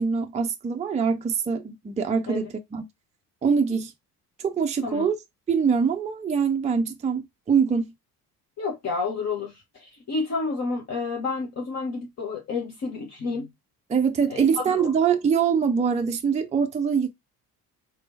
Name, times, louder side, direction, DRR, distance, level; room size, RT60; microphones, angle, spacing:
voice 1, 0.0-2.9 3.4-3.9 4.4-5.2 5.5-7.9 13.9-17.1, right 6 dB, 15° right, 0.6 m, -24 dB
voice 2, 8.6-13.5 14.3-14.9, left 4 dB, 35° left, 1.1 m, -30 dB
4.0 x 3.4 x 2.7 m
figure-of-eight pair, 50°, 46 cm